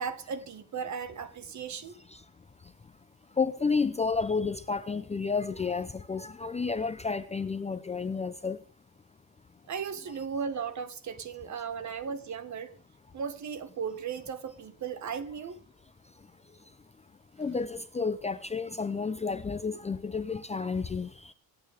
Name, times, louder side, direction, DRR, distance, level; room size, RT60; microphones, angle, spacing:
voice 1, 0.0-2.0 9.7-12.7 13.1-15.6, right 6 dB, 45° right, 1.7 m, -36 dB
voice 2, 3.4-8.6 17.4-21.1, left 4 dB, 15° left, 0.6 m, -31 dB
26.0 x 9.0 x 3.6 m
cardioid pair, 165°, 42 cm